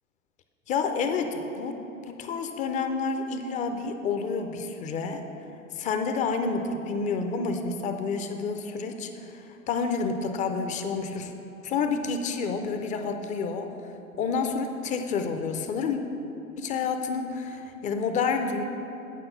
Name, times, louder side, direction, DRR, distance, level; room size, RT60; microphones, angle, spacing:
voice 1, 0.7-5.3 5.7-11.3 11.6-13.7 14.2-16.0 16.6-18.6, left 5 dB, 20° left, 6 dB, 0.4 m, -29 dB
9.2 x 5.3 x 5.4 m, 2.9 s
figure-of-eight pair, 95°, 41 cm